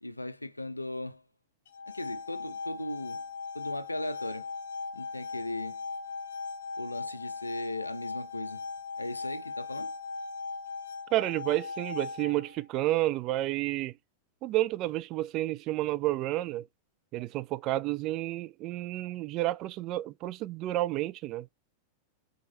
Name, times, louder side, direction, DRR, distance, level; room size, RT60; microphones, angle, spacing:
voice 1, 0.0-1.2 1.9-3.2 3.5-4.5 4.9-5.8 6.7-8.6 9.0-9.9, left 1 dB, 85° left, 0.4 m, -37 dB
sound 1, 1.7-12.6, left 4 dB, 60° left, 1.2 m, -39 dB
voice 2, 11.1-13.9 14.4-16.7 17.1-21.5, right 16 dB, 40° right, 0.3 m, -30 dB
4.6 x 2.3 x 4.1 m
figure-of-eight pair, 90°, 0 cm